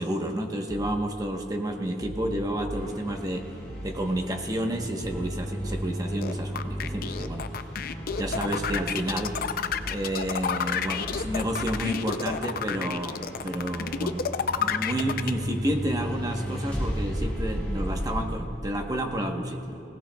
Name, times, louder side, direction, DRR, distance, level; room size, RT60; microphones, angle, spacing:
voice 1, 0.0-3.5 3.8-7.5 8.2-9.4 9.9-14.3 14.5-19.9, right 1 dB, 20° right, 3 dB, 1.0 m, -30 dB
sound 1, 0.7-1.0 2.0-2.8 3.7-4.0 5.0-5.9 6.7-7.0 8.0-8.9 9.7-10.0 11.0-11.9, right 1 dB, 75° right, 2.0 m, -38 dB
sound 2, 2.7-18.2, equal, 10° left, 3.5 m, -36 dB
sound 3, 6.2-15.3, left 7 dB, 55° left, 0.5 m, -30 dB
19.5 x 18.0 x 2.3 m, 2.8 s
head